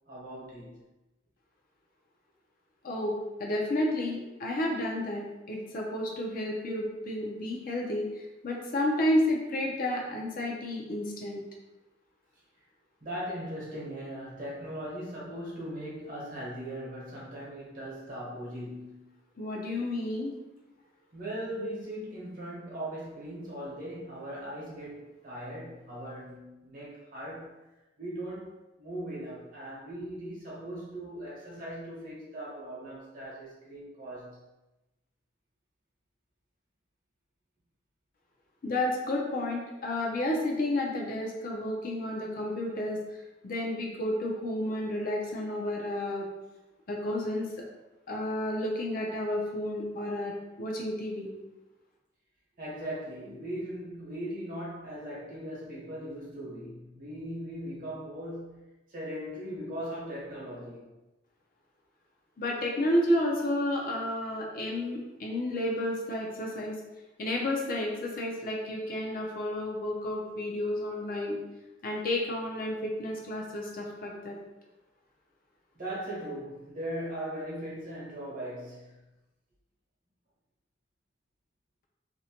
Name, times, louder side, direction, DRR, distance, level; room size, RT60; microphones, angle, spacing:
voice 1, 0.1-0.8 13.0-19.1 21.1-27.5 28.0-34.4 52.6-60.9 75.7-79.0, right 1 dB, 50° right, 0.9 m, -39 dB
voice 2, 3.4-11.4 19.4-20.3 38.6-43.0 43.4-46.3 46.9-47.6 48.1-50.3 50.6-51.3 62.4-66.8 67.2-71.4 71.8-74.4, left 1 dB, 50° left, 0.5 m, -31 dB
2.6 x 2.1 x 2.8 m
head